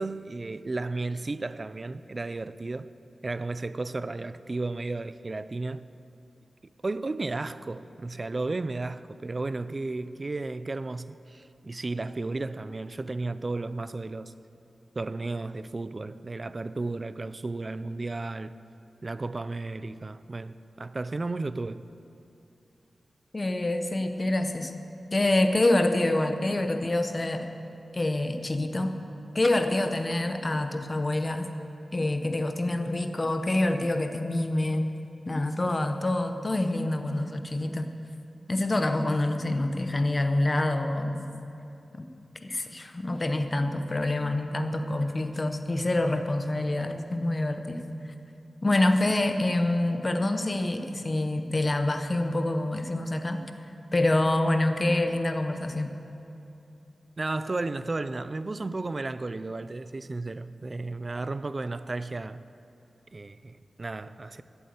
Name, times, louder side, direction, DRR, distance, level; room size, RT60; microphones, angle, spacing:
voice 1, 0.0-2.9 3.2-5.9 6.8-14.3 15.0-18.5 19.0-21.8 57.2-62.4 63.1-64.4, right 3 dB, 30° right, 0.3 m, -33 dB
voice 2, 23.3-24.7 25.1-27.5 27.9-28.9 29.3-31.5 31.9-35.0 35.3-37.9 38.5-41.3 41.9-42.1 42.4-47.9 48.6-53.4 53.9-55.9, left 1 dB, 25° left, 0.8 m, -26 dB
13.5 x 8.0 x 8.0 m
wide cardioid pair, 165°, 0 cm